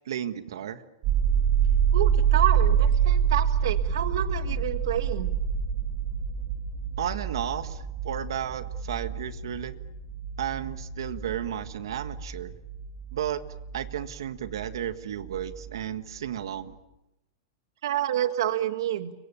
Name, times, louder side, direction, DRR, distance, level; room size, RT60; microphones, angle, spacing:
voice 1, 0.0-0.8 7.0-9.8 10.4-12.5 13.1-13.4 13.7-16.7, right 10 dB, 85° right, 9 dB, 1.7 m, -33 dB
sound 1, 1.0-14.8 15.2-16.1, right 8 dB, 30° right, 2.9 m, -27 dB
voice 2, 1.9-5.3 17.8-19.1, right 11 dB, 70° right, 9 dB, 1.6 m, -28 dB
30.0 x 24.5 x 7.1 m, 0.94 s
supercardioid pair, 175°, 2 cm